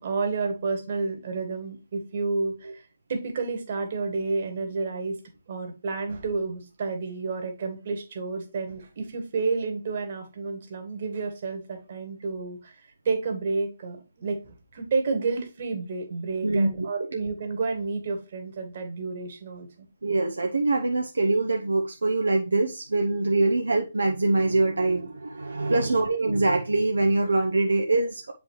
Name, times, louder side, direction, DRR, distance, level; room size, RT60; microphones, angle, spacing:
voice 1, 0.0-2.8 3.1-5.2 5.5-19.9 25.6-26.0, right 4 dB, 45° right, 5 dB, 1.8 m, -30 dB
voice 2, 16.4-16.9 20.0-28.3, right 2 dB, 70° right, 3 dB, 0.8 m, -24 dB
8.2 x 5.1 x 3.1 m, 0.30 s
figure-of-eight pair, 140°, 0 cm